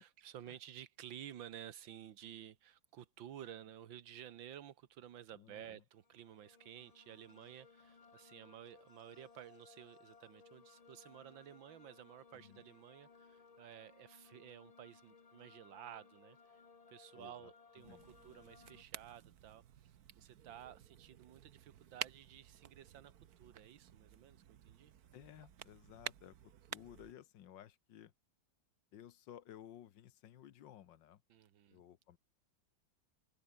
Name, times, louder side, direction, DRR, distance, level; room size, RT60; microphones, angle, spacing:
voice 1, 0.0-16.6 16.9-23.1 23.4-24.9 31.3-31.8, right 10 dB, 90° right, 1.9 m, -54 dB
voice 2, 5.4-5.8 12.3-12.6 17.2-17.5 17.8-18.0 25.1-28.1 28.9-31.2 31.7-32.2, left 11 dB, 75° left, 1.6 m, -56 dB
sound 1, 6.0-18.8, left 5 dB, 35° left, 0.6 m, -63 dB
sound 2, 17.8-27.1, right 10 dB, 60° right, 1.4 m, -51 dB
omnidirectional pair, 2.1 m